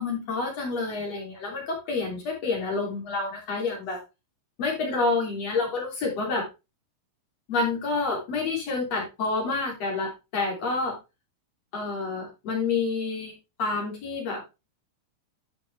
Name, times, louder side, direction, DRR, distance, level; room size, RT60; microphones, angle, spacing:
voice 1, 0.0-4.0 4.6-6.4 7.5-10.9 11.7-14.4, left 3 dB, 50° left, 0 dB, 4.2 m, -28 dB
12.0 x 5.6 x 3.4 m, 0.26 s
omnidirectional pair, 4.0 m